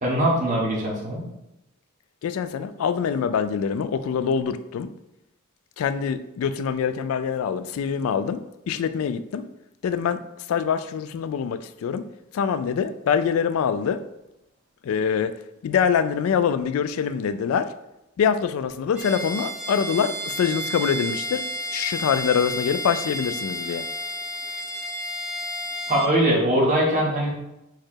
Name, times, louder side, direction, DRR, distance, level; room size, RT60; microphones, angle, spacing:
voice 1, 0.0-1.2 25.9-27.3, right 1 dB, 35° right, -4 dB, 1.4 m, -21 dB
voice 2, 2.2-4.9 5.8-8.4 8.7-9.5 9.8-10.2 10.5-12.0 12.3-14.0 14.8-15.3 15.6-17.7 18.2-21.4 21.7-23.9, left 7 dB, 80° left, 13 dB, 0.3 m, -24 dB
Bowed string instrument, 18.9-26.1, equal, 5° right, 1.0 m, -31 dB
4.6 x 2.3 x 4.5 m, 0.90 s
head